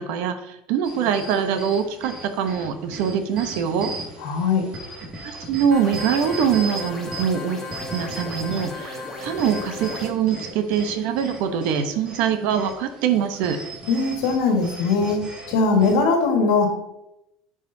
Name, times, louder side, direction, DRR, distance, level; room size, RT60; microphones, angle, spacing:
voice 1, 0.0-3.9 5.2-7.6 7.9-13.6, right 8 dB, 70° right, 8 dB, 0.8 m, -23 dB
sound 1, 0.8-16.0, right 2 dB, 35° right, 1.9 m, -37 dB
voice 2, 4.2-4.6 13.9-15.2 15.5-16.7, left 4 dB, 85° left, 3 dB, 1.5 m, -20 dB
sound 2, 5.7-10.1, left 2 dB, 15° left, 1.1 m, -35 dB
9.5 x 4.9 x 2.7 m, 0.86 s
supercardioid pair, 125°, 3 cm